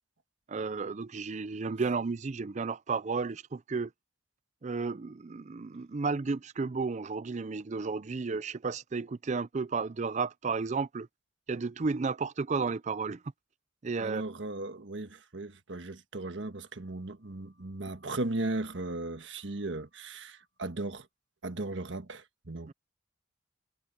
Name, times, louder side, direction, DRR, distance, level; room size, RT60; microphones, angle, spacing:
voice 1, 0.5-3.9 4.6-11.1 11.5-13.2 13.8-14.2 22.7-22.8, right 4 dB, 40° right, 0.5 m, -33 dB
voice 2, 14.0-21.1 21.4-22.7, right 2 dB, 85° right, 1.5 m, -37 dB
head